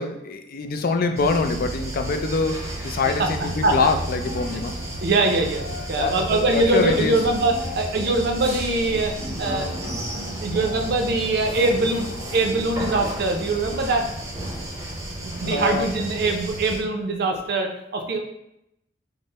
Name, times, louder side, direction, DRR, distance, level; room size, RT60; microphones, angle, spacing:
voice 1, 0.0-4.8 5.9-7.2 15.4-15.9, left 4 dB, 50° left, 6 dB, 0.4 m, -24 dB
sound 1, 0.6-15.3, left 1 dB, 80° left, 1.5 m, -39 dB
sound 2, 1.2-16.8, right 1 dB, 15° right, 0.6 m, -33 dB
voice 2, 5.0-10.0 10.3-14.0 15.2-18.2, right 2 dB, 60° right, 4 dB, 0.5 m, -23 dB
3.7 x 2.1 x 3.9 m, 0.83 s
head